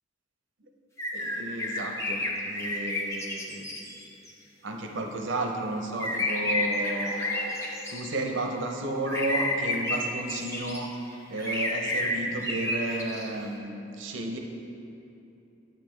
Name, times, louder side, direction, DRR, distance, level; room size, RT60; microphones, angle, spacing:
sound 1, 1.0-4.3 6.0-8.2 9.0-10.8 11.4-13.3, left 2 dB, 15° left, 0.7 m, -30 dB
voice 1, 1.1-3.7 4.6-7.1 7.9-10.9 11.3-14.4, right 2 dB, 65° right, 2 dB, 0.7 m, -32 dB
sound 2, 5.1-8.1, equal, 50° left, 1.0 m, -45 dB
9.3 x 6.8 x 3.2 m, 2.8 s
head